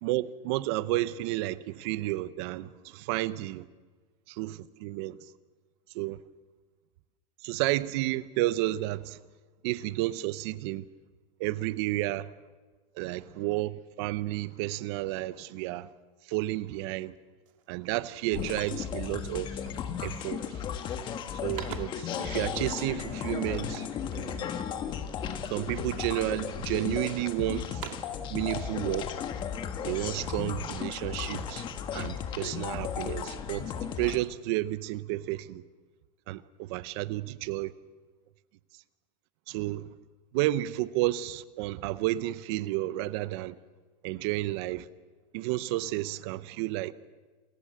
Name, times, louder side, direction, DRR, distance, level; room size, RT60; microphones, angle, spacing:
voice 1, 0.0-3.6 4.3-5.2 5.9-6.2 7.4-9.2 9.6-10.8 11.4-12.3 12.9-15.9 16.2-17.1 17.7-19.6 20.0-20.6 21.4-23.9 24.1-24.5 25.5-27.8 28.3-29.1 29.8-35.6 36.3-37.7 39.5-39.9 40.3-43.6 44.0-44.9 45.3-46.9, right 16 dB, 50° right, 0.8 m, -31 dB
sound 1, 17.0-17.2 17.4-19.0 19.6-20.0 20.3-20.8 21.1-22.2 23.7-24.9 25.4-26.0 26.5-27.2 27.6-28.3, right 11 dB, 70° right, 2.3 m, -47 dB
sound 2, 18.3-34.2, left 8 dB, 25° left, 1.4 m, -35 dB
28.0 x 15.0 x 7.6 m
supercardioid pair, 160°, 17 cm